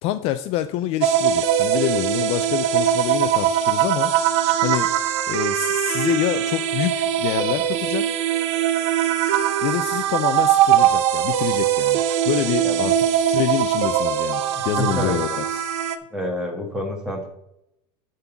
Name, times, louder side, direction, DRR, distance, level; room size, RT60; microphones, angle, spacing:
voice 1, 0.0-4.1 4.4-4.9 5.3-8.1 9.6-12.0 12.3-15.7, left 13 dB, 45° left, 11 dB, 0.4 m, -26 dB
sound 1, 1.0-16.0, right 10 dB, 75° right, 0.8 m, -21 dB
voice 2, 12.6-12.9 14.5-15.2 16.1-17.3, equal, 5° right, 2 dB, 1.7 m, -28 dB
9.4 x 3.9 x 7.1 m, 0.81 s
supercardioid pair, 160°, 14 cm